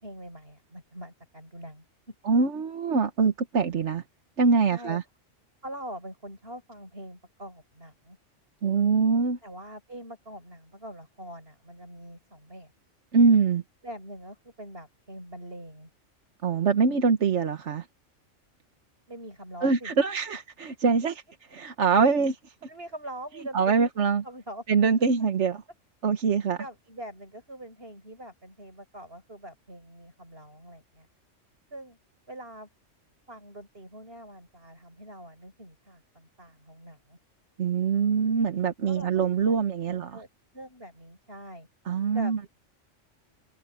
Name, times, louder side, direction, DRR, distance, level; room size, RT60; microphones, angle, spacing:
voice 1, 0.0-2.1 4.7-5.0 5.6-8.2 9.4-12.7 13.8-15.9 19.1-19.9 21.9-22.0 22.7-23.9 24.2-24.6 26.6-31.1 31.7-32.0 32.3-32.7 33.3-37.2 38.8-40.3 40.5-41.7 42.1-42.5, right 1 dB, 50° right, 8.5 m, -43 dB
voice 2, 2.3-4.0 4.4-5.0 8.6-9.4 13.1-13.6 16.4-17.8 19.6-21.1 21.5-22.3 23.5-24.2 24.7-25.6 26.0-26.6 37.6-40.2 41.9-42.5, right 5 dB, 70° right, 1.4 m, -23 dB
omnidirectional pair, 1.3 m